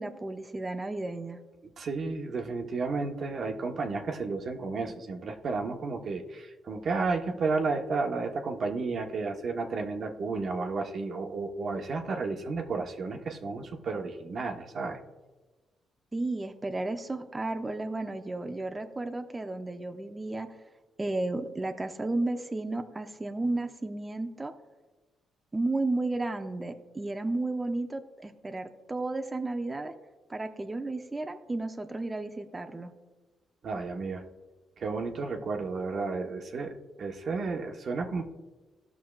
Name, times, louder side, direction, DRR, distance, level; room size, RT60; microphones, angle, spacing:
voice 1, 0.0-1.4 16.1-20.5 21.0-24.5 25.5-29.9 30.3-32.9, right 2 dB, 20° right, 6 dB, 0.6 m, -33 dB
voice 2, 1.8-15.0 33.6-34.2 34.8-38.2, right 4 dB, 55° right, 3 dB, 1.0 m, -32 dB
17.0 x 6.1 x 2.4 m, 1.2 s
cardioid pair, 90°, 0 cm